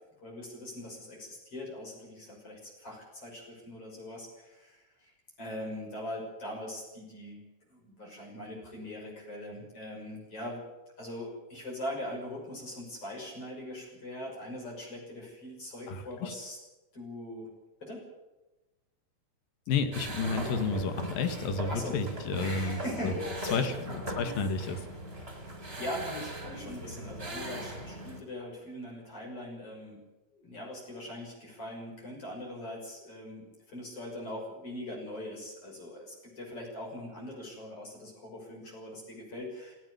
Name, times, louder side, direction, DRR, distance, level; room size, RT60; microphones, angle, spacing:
voice 1, 0.2-5.1 5.4-10.6 11.0-16.6 16.9-17.5 17.8-18.0 21.7-22.0 22.4-23.6 25.3-30.0 30.3-39.8, left 1 dB, 40° left, -2 dB, 7.1 m, -41 dB
voice 2, 15.9-16.3 19.7-23.1 23.5-24.9, left 4 dB, 90° left, 9 dB, 3.7 m, -31 dB
sound 1, 19.9-28.2, equal, 15° right, 3.7 m, -39 dB
19.0 x 16.0 x 9.6 m, 1.0 s
omnidirectional pair, 3.9 m